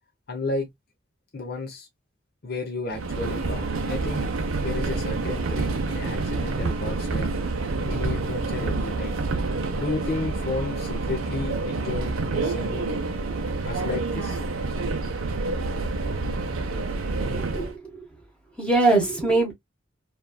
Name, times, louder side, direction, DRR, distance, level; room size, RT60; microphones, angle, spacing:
voice 1, 0.3-0.7 1.3-1.9 2.4-4.3 4.6-7.3 7.8-9.2 9.8-12.9 13.7-14.4, left 3 dB, 50° left, 0.7 m, -33 dB
Subway metro underground, 2.9-17.7, right 3 dB, 85° right, 0.6 m, -28 dB
voice 2, 17.2-18.0 18.6-19.5, right 2 dB, 5° left, 0.9 m, -22 dB
3.0 x 2.4 x 2.2 m
head